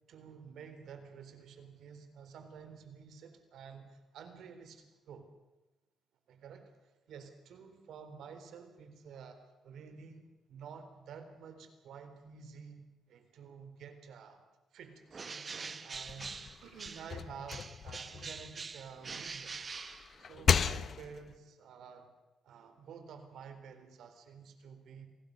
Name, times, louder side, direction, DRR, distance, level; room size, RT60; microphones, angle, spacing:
voice 1, 0.0-5.3 6.3-6.7 7.1-14.4 14.7-16.3 16.6-19.5 20.2-22.1 22.4-25.1, right 6 dB, 75° right, 8 dB, 3.9 m, -51 dB
Bird, 15.1-17.2 17.5-20.5, right 5 dB, 35° right, 1.1 m, -44 dB
sound 1, 15.9-19.1 19.6-21.4, left 7 dB, 50° left, 0.8 m, -35 dB
27.5 x 19.0 x 6.8 m, 1.1 s
cardioid pair, 105°, 0 cm